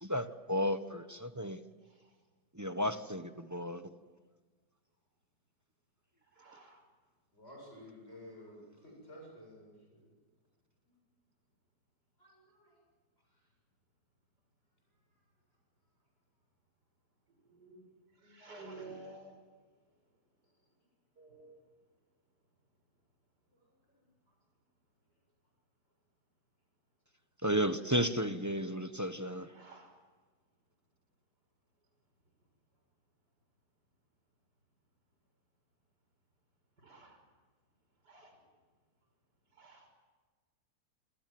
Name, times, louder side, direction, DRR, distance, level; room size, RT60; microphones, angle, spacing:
voice 1, 0.0-1.6 2.5-3.9 27.4-29.5, equal, 15° right, 9 dB, 0.8 m, -33 dB
voice 2, 1.8-2.3 6.1-7.1 12.3-12.5 14.2-14.3 15.0-15.1 15.5-16.1 16.9-26.6 26.9-27.3 29.4-31.3 31.6-34.2 34.5-35.4 36.2-39.9, right 2 dB, 85° right, 4 dB, 6.6 m, -59 dB
voice 3, 7.3-10.1 10.8-11.0 12.2-12.8 23.5-24.1, left 1 dB, 40° left, -1 dB, 8.2 m, -54 dB
27.5 x 26.0 x 7.7 m, 1.4 s
omnidirectional pair, 1.8 m